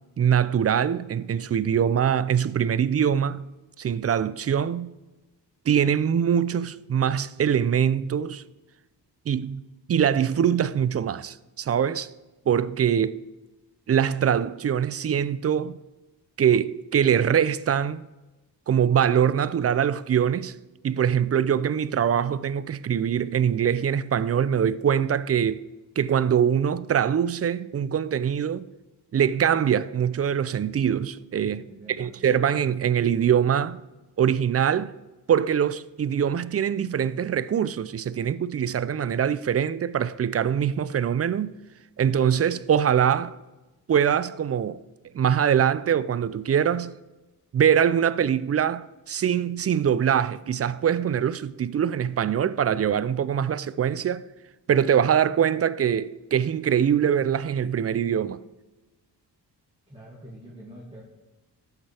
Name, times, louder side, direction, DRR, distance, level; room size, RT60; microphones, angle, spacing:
voice 1, 0.2-3.4 3.8-4.9 5.7-8.4 9.3-9.6 9.9-12.1 12.5-13.2 13.9-15.8 16.4-18.0 18.7-20.6 20.8-25.6 26.0-28.7 29.1-31.7 32.0-33.8 34.2-34.9 35.3-41.5 42.0-43.4 43.9-44.8 45.1-47.0 47.5-54.3 54.7-58.4, right 8 dB, 35° right, 0.5 m, -23 dB
voice 2, 31.7-32.1 59.9-61.0, right 1 dB, 15° right, 2.2 m, -45 dB
12.5 x 8.3 x 3.4 m
cardioid pair, 65°, 42 cm